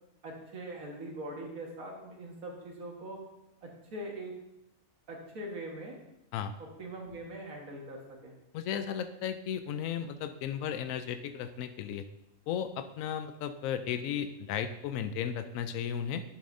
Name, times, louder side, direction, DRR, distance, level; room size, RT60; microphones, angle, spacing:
voice 1, 0.2-3.2 3.6-4.4 5.1-6.0 6.6-8.3, right 1 dB, 80° right, 0 dB, 2.0 m, -42 dB
voice 2, 8.5-12.0 12.5-16.2, left 8 dB, 75° left, 10 dB, 1.0 m, -35 dB
10.0 x 7.4 x 2.6 m, 0.86 s
omnidirectional pair, 1.4 m